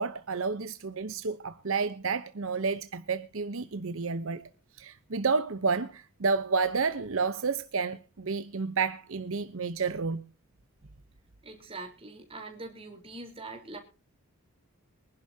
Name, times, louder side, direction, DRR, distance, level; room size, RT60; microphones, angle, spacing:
voice 1, 0.0-4.4 4.8-10.2, right 4 dB, 65° right, 0.8 m, -30 dB
voice 2, 11.4-13.8, right 2 dB, 25° right, 3.9 m, -43 dB
23.5 x 11.0 x 2.8 m
head